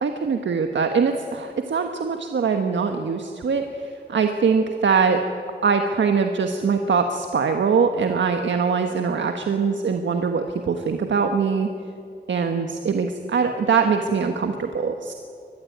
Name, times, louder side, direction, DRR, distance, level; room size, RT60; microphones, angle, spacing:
voice 1, 0.0-5.2 5.6-11.7 12.3-15.1, right 5 dB, 80° right, 5 dB, 1.4 m, -22 dB
24.0 x 20.0 x 9.5 m, 2.5 s
wide cardioid pair, 155°, 19 cm